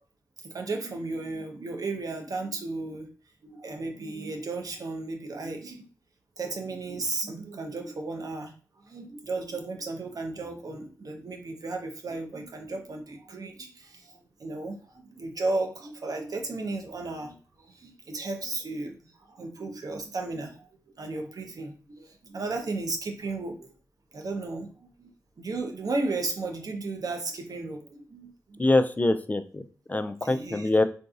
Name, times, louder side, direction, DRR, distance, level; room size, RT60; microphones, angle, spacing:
voice 1, 0.4-3.1 3.4-5.9 6.4-8.5 8.8-19.0 19.3-20.7 21.0-23.7 24.1-25.1 25.4-28.7 30.2-30.8, right 3 dB, 65° right, 4 dB, 0.7 m, -34 dB
voice 2, 28.6-29.6 29.9-30.8, left 2 dB, 25° left, 10 dB, 0.3 m, -24 dB
3.8 x 2.5 x 2.4 m, 0.40 s
cardioid pair, 60°, 7 cm